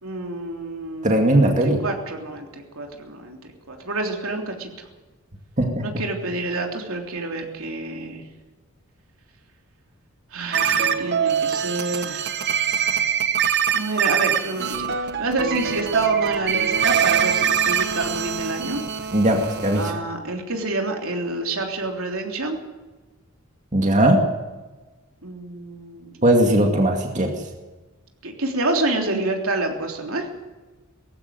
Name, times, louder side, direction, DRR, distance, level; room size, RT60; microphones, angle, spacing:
voice 1, 0.0-3.4 3.7-4.8 5.8-8.2 10.3-12.3 13.7-18.8 19.8-22.6 25.2-26.2 28.2-30.3, right 2 dB, 70° right, 2 dB, 3.4 m, -28 dB
voice 2, 1.0-1.8 5.6-5.8 19.1-20.0 23.7-24.2 26.2-27.3, right 1 dB, 35° right, 2 dB, 2.3 m, -18 dB
sound 1, 10.5-19.9, right 7 dB, 50° right, 1.2 m, -23 dB
19.0 x 15.0 x 9.5 m, 1.2 s
head